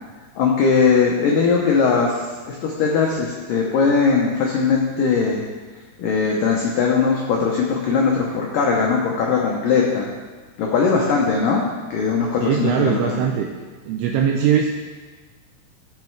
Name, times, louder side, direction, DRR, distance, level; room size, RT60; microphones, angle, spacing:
voice 1, 0.4-2.2 2.5-5.5 6.0-10.1 10.6-11.6 11.9-13.1, left 5 dB, 90° left, -1 dB, 1.9 m, -19 dB
voice 2, 12.4-13.5 13.8-14.7, right 8 dB, 85° right, 1 dB, 2.4 m, -20 dB
13.5 x 5.4 x 4.6 m, 1.4 s
omnidirectional pair, 5.2 m